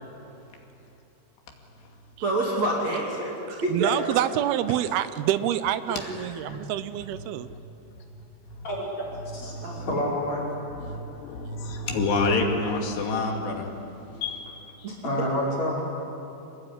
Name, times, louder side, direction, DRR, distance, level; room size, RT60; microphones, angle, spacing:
voice 1, 2.2-3.3 3.6-3.9 5.9-6.3 9.6-9.9 14.8-14.9, right 2 dB, 45° right, -2 dB, 3.6 m, -27 dB
voice 2, 3.5-7.5, right 12 dB, 75° right, 13 dB, 2.5 m, -27 dB
voice 3, 8.6-9.0 9.3-10.4 10.9-11.0 11.7-11.9 15.0-15.8, left 1 dB, 40° left, -4 dB, 6.4 m, -29 dB
voice 4, 9.5-9.9 10.8-13.7 14.2-14.5 14.8-14.9, left 3 dB, 80° left, 1 dB, 4.6 m, -28 dB
26.5 x 20.0 x 9.8 m, 3.0 s
omnidirectional pair, 4.8 m